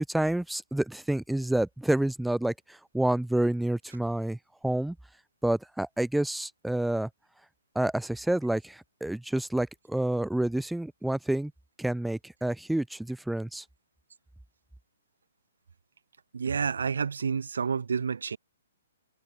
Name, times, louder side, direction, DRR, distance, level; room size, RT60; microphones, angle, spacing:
voice 1, 0.0-4.4 4.6-5.0 5.4-7.1 7.8-11.5 11.8-13.6, right 1 dB, ahead, 3.6 m, -28 dB
voice 2, 16.3-18.4, right 6 dB, 85° right, 4.5 m, -29 dB
hypercardioid pair, 155°, 0 cm